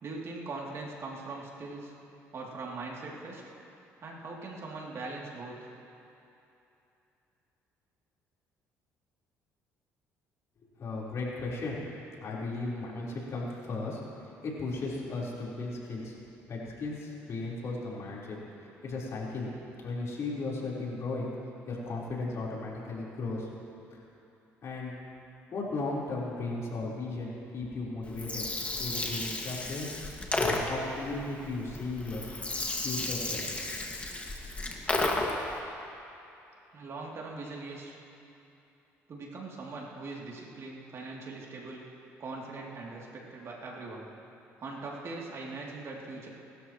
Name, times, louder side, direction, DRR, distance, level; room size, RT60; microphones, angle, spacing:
voice 1, 0.0-1.9 2.3-3.4 4.0-5.7 36.7-37.9 39.1-41.9 42.2-44.1 44.6-46.3, right 3 dB, 50° right, -3 dB, 3.1 m, -41 dB
voice 2, 10.6-11.8 12.2-16.2 16.5-19.5 19.8-21.3 21.7-23.5 23.9-24.0 24.6-25.0 25.5-28.4 28.8-29.9 30.4-32.4 32.8-33.5, left 3 dB, 55° left, -5 dB, 4.4 m, -36 dB
Gurgling, 28.0-35.5, left 2 dB, 20° left, 2.1 m, -33 dB
26.5 x 13.0 x 3.2 m, 2.8 s
supercardioid pair, 75°, 6 cm